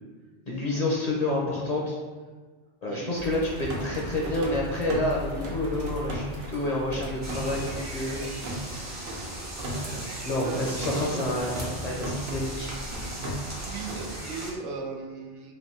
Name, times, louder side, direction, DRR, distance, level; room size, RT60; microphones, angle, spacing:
voice 1, 0.5-2.0 2.8-8.7 10.2-12.7, left 1 dB, 45° left, -4 dB, 0.6 m, -29 dB
sound 1, 3.1-14.2, right 1 dB, 55° right, 0.8 m, -36 dB
sound 2, 7.2-14.5, right 1 dB, 20° right, 0.5 m, -39 dB
voice 2, 10.0-11.2 13.5-15.5, right 4 dB, 80° right, 1 dB, 1.0 m, -37 dB
3.3 x 2.6 x 4.2 m, 1.4 s
omnidirectional pair, 1.2 m